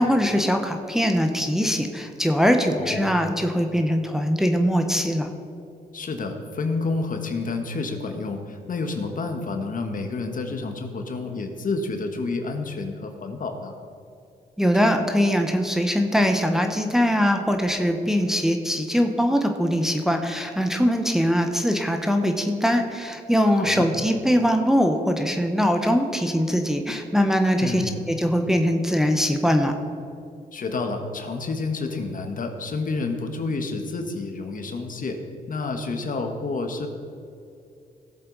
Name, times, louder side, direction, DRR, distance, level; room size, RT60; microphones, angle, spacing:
voice 1, 0.0-5.3 14.6-29.7, equal, 5° right, 4 dB, 1.1 m, -22 dB
voice 2, 2.7-3.3 5.9-13.7 23.5-23.9 27.6-28.1 30.5-35.2 35.5-36.9, left 3 dB, 50° left, 5 dB, 1.5 m, -29 dB
17.5 x 7.6 x 4.1 m, 2.6 s
cardioid pair, 75°, 18 cm